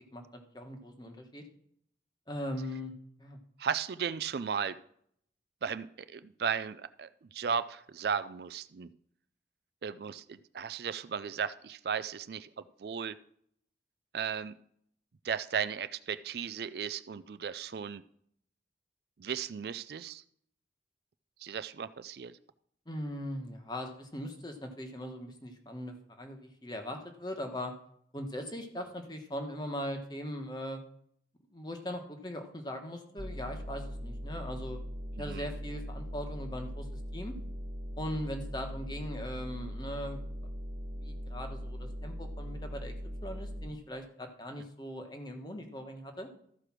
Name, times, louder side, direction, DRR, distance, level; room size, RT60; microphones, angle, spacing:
voice 1, 0.0-1.4 2.3-2.9 3.2-3.4 22.9-27.7 28.1-30.8 31.5-34.8 35.2-37.3 38.0-40.2 41.0-46.3, equal, 25° left, 4 dB, 1.3 m, -40 dB
voice 2, 3.6-4.8 5.6-8.9 9.8-13.2 14.1-14.6 15.2-18.0 19.2-20.2 21.4-22.3 35.2-35.5, right 7 dB, 55° right, 14 dB, 0.4 m, -35 dB
sound 1, 33.2-43.7, equal, 40° right, 1.0 m, -40 dB
13.5 x 4.9 x 6.0 m, 0.67 s
head